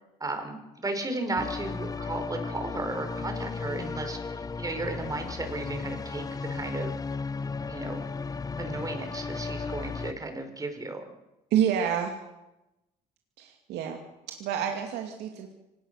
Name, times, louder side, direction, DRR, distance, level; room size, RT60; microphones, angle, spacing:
voice 1, 0.2-6.9 7.7-8.0 8.6-11.1, right 2 dB, 20° right, 6 dB, 4.6 m, -35 dB
sound 1, 1.4-10.1, left 4 dB, 20° left, 0.8 m, -35 dB
voice 2, 11.5-12.2 13.4-14.0 14.3-15.5, right 9 dB, 85° right, 3 dB, 2.6 m, -28 dB
25.5 x 19.0 x 6.7 m, 0.95 s
cardioid pair, 110°, 17 cm